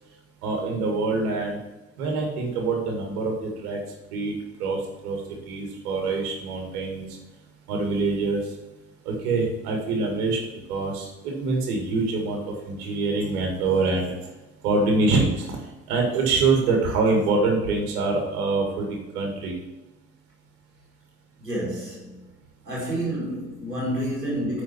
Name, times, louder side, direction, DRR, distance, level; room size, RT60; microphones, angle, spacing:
voice 1, 0.4-1.6 2.0-3.8 4.1-4.3 4.6-7.2 7.7-8.5 9.0-10.4 10.7-14.2 14.6-15.6 15.9-19.6, right 3 dB, 65° right, 1 dB, 2.0 m, -25 dB
voice 2, 21.4-22.2 22.7-24.6, right 1 dB, 90° right, -4 dB, 1.9 m, -29 dB
9.3 x 4.5 x 5.8 m, 1.1 s
figure-of-eight pair, 55°, 47 cm